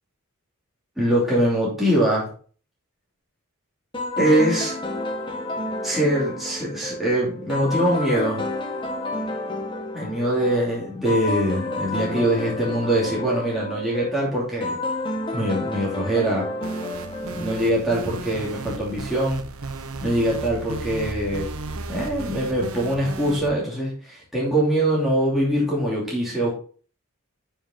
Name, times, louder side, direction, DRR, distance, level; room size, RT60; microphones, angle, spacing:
voice 1, 1.0-2.3 4.2-4.8 5.8-8.4 9.9-14.8 15.3-16.5 17.3-19.4 20.0-21.5 21.9-26.5, right 1 dB, ahead, -7 dB, 2.7 m, -23 dB
sound 1, 3.9-18.2, left 2 dB, 20° left, 1.4 m, -30 dB
sound 2, 16.6-23.5, right 3 dB, 75° right, 0.9 m, -34 dB
8.9 x 5.6 x 3.8 m, 0.42 s
head